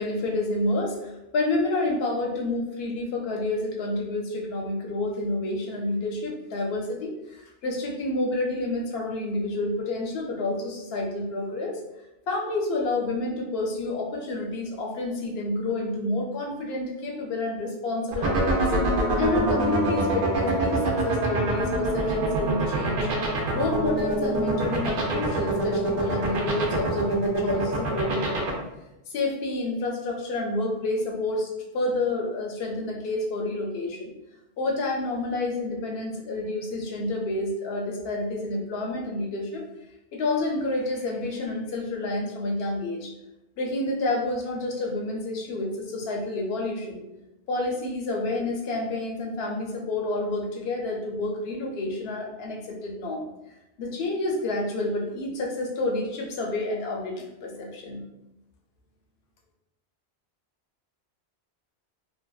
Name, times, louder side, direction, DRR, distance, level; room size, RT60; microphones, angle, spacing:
voice 1, 0.0-11.7 12.3-18.7 19.2-23.1 23.5-28.6 29.1-34.1 34.6-39.6 40.1-43.1 43.6-47.0 47.5-53.3 53.8-58.0, left 2 dB, 70° left, 0 dB, 0.8 m, -29 dB
sound 1, 18.1-28.5, right 2 dB, 60° right, 0.7 m, -25 dB
2.6 x 2.2 x 2.2 m, 0.93 s
omnidirectional pair, 1.1 m